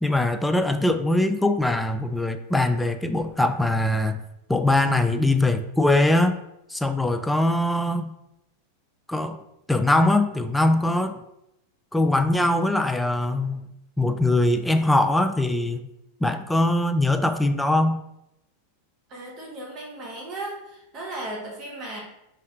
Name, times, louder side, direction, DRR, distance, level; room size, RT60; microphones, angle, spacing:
voice 1, 0.0-4.2 4.5-6.4 6.7-8.1 9.1-9.4 9.7-11.2 11.9-13.7 14.0-15.9 16.2-18.0, left 1 dB, 5° left, 9 dB, 0.3 m, -22 dB
voice 2, 19.1-22.0, right 2 dB, 35° right, -1 dB, 1.2 m, -36 dB
4.3 x 3.2 x 3.6 m, 0.85 s
figure-of-eight pair, 90°, 0 cm